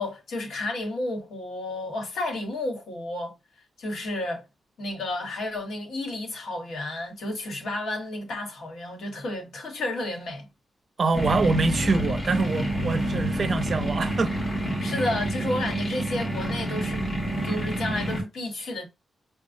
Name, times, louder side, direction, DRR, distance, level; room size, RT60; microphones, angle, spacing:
voice 1, 0.0-3.3 3.8-4.4 4.8-10.5 14.8-17.0 17.4-18.9, left 2 dB, 80° left, 1.3 m, -31 dB
voice 2, 11.0-14.3, right 4 dB, 40° right, 0.5 m, -25 dB
sound 1, 11.1-18.2, right 1 dB, 30° left, 1.9 m, -28 dB
6.0 x 2.2 x 2.6 m
wide cardioid pair, 160°, 0 cm